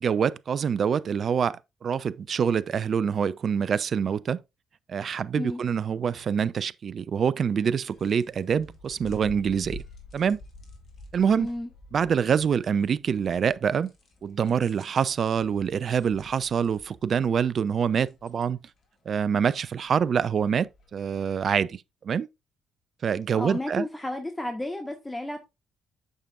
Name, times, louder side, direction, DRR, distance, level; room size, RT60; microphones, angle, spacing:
voice 1, 0.0-4.4 4.9-9.8 10.1-10.4 11.1-11.5 11.9-13.9 14.2-18.6 19.1-22.3 23.0-23.9, right 7 dB, 50° right, 0.4 m, -25 dB
sound 1, 7.5-21.6, left 1 dB, 55° left, 2.2 m, -50 dB
voice 2, 11.4-11.7 23.3-25.4, left 1 dB, 15° left, 1.4 m, -32 dB
8.8 x 6.7 x 2.5 m
hypercardioid pair, 45°, 0 cm